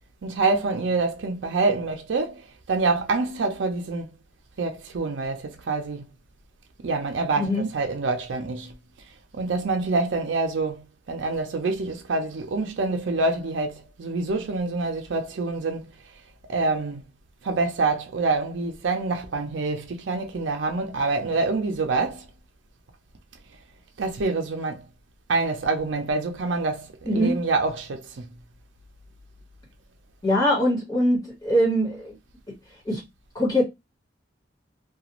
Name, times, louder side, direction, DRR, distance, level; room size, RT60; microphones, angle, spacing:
voice 1, 0.2-4.1 4.6-6.1 6.8-8.8 9.3-15.9 16.5-17.0 17.4-22.3 24.0-24.9 25.3-28.3, right 3 dB, 90° right, 0.5 m, -26 dB
voice 2, 7.4-7.7 27.0-27.4 30.2-32.1 32.8-33.0 33.3-33.6, equal, 20° left, 1.3 m, -22 dB
2.4 x 2.3 x 2.9 m
head